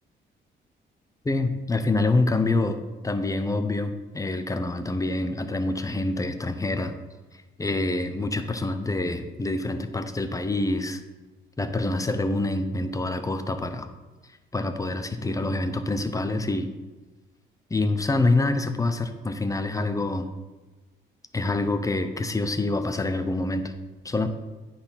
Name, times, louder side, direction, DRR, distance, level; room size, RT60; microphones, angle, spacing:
voice 1, 1.2-2.8 3.0-7.0 7.6-11.0 11.6-13.9 14.5-16.7 17.7-20.3 21.3-23.7 24.0-24.3, left 2 dB, 15° left, 9 dB, 0.8 m, -26 dB
9.4 x 4.4 x 5.8 m, 1.2 s
cardioid pair, 90°, 20 cm